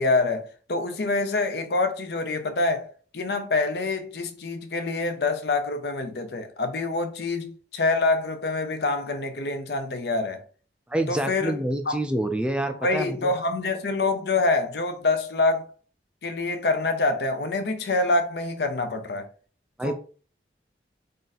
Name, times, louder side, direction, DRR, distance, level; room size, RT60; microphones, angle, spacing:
voice 1, 0.0-2.9 3.1-10.4 11.1-11.6 11.9-12.0 12.8-15.7 16.2-19.3 19.8-19.9, left 3 dB, 65° left, 0.6 m, -26 dB
voice 2, 10.9-13.3 19.8-19.9, right 1 dB, 5° right, 0.3 m, -27 dB
3.8 x 2.5 x 4.0 m
head